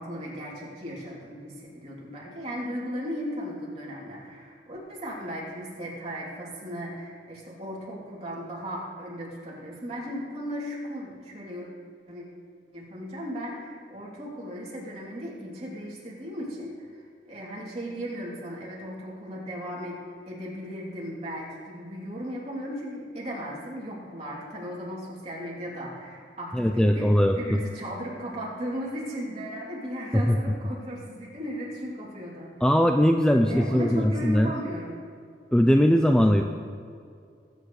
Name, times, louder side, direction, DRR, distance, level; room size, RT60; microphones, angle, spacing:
voice 1, 0.0-11.7 12.1-12.2 12.7-17.0 17.3-20.0 20.3-27.1 27.4-32.6 33.5-35.0, equal, 35° right, -5 dB, 3.1 m, -36 dB
voice 2, 26.5-27.6 30.3-30.4 32.6-34.5 35.5-36.4, equal, 5° left, 4 dB, 0.4 m, -20 dB
20.0 x 9.0 x 3.2 m, 2.4 s
head